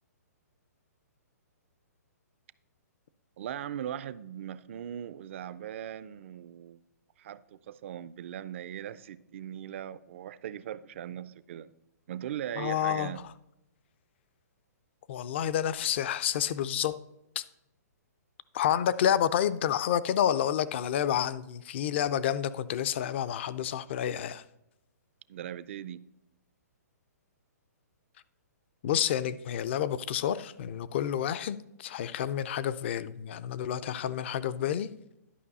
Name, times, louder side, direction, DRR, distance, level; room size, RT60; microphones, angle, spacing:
voice 1, 3.4-6.8 7.2-11.7 12.1-13.2 25.3-26.0, right 10 dB, 45° right, 0.4 m, -39 dB
voice 2, 12.6-13.1 15.1-16.9 17.4-17.5 18.5-24.4 28.8-34.9, left 10 dB, 40° left, 0.5 m, -29 dB
11.5 x 5.4 x 4.1 m
hypercardioid pair, 155°, 9 cm